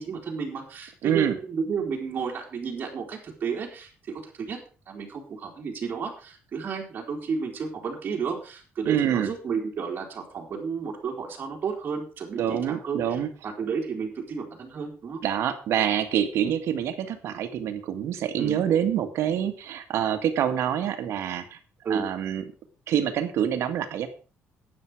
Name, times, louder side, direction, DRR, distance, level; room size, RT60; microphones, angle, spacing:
voice 1, 0.0-4.6 4.9-15.2 18.4-18.6 21.8-22.0, right 5 dB, 40° right, 0 dB, 3.6 m, -32 dB
voice 2, 1.0-1.4 8.8-9.3 12.4-13.3 15.2-21.6 21.9-22.4 22.9-24.1, right 9 dB, 75° right, 9 dB, 1.9 m, -26 dB
12.0 x 9.5 x 4.9 m, 0.36 s
cardioid pair, 155°, 5 cm